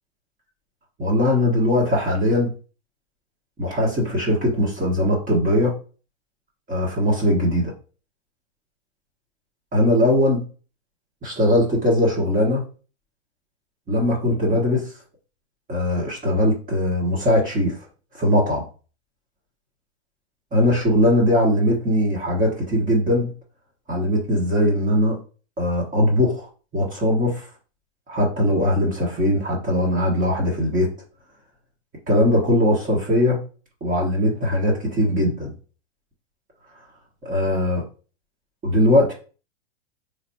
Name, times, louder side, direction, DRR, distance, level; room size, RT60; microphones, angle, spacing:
voice 1, 1.0-2.5 3.6-5.7 6.7-7.7 9.7-10.4 11.2-12.6 13.9-14.9 15.7-17.8 18.1-18.6 20.5-23.3 23.9-25.2 25.6-26.5 26.7-27.5 28.1-30.9 32.1-33.4 33.8-35.5 37.2-37.8 38.6-39.1, left 1 dB, 25° right, -3 dB, 1.4 m, -20 dB
4.0 x 3.4 x 2.8 m, 0.36 s
hypercardioid pair, 115°, 33 cm